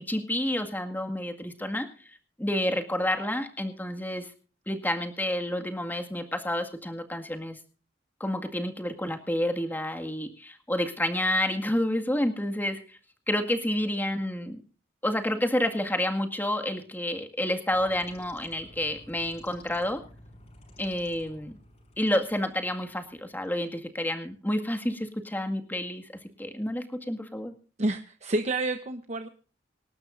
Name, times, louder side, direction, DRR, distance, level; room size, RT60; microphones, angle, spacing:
voice 1, 0.0-1.9 2.4-4.3 4.7-7.6 8.2-13.0 13.3-14.6 15.0-20.0 20.8-21.6 22.0-26.0 26.4-27.6, left 1 dB, 10° left, 5 dB, 1.9 m, -29 dB
sound 1, 17.7-23.7, left 1 dB, 35° left, 5.6 m, -53 dB
voice 2, 27.8-29.3, right 2 dB, 40° right, 7 dB, 1.0 m, -29 dB
25.5 x 12.0 x 2.6 m, 0.39 s
head